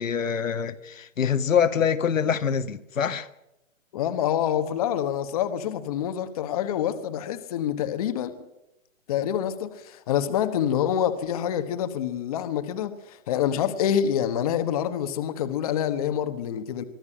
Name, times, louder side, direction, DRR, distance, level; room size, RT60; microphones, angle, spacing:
voice 1, 0.0-3.3, left 7 dB, 75° left, 1.6 m, -25 dB
voice 2, 3.9-8.3 9.1-16.8, left 9 dB, 30° left, 1.3 m, -26 dB
24.0 x 13.5 x 8.7 m
hypercardioid pair, 160°, 39 cm